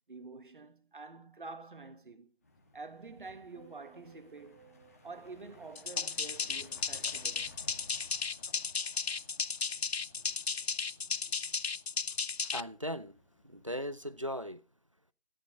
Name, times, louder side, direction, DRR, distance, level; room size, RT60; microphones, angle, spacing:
voice 1, 0.1-2.3 2.7-4.7 5.0-7.6, right 3 dB, 50° right, 1.7 m, -48 dB
sound 1, 2.4-14.2, left 2 dB, 15° left, 1.4 m, -58 dB
sound 2, 3.5-7.9 8.2-8.6, right 7 dB, 10° right, 1.2 m, -63 dB
sound 3, 5.8-12.6, left 5 dB, 75° left, 0.7 m, -34 dB
voice 2, 12.4-13.2 13.4-14.6, equal, 30° right, 0.6 m, -38 dB
15.0 x 10.5 x 5.2 m
figure-of-eight pair, 170°, 32 cm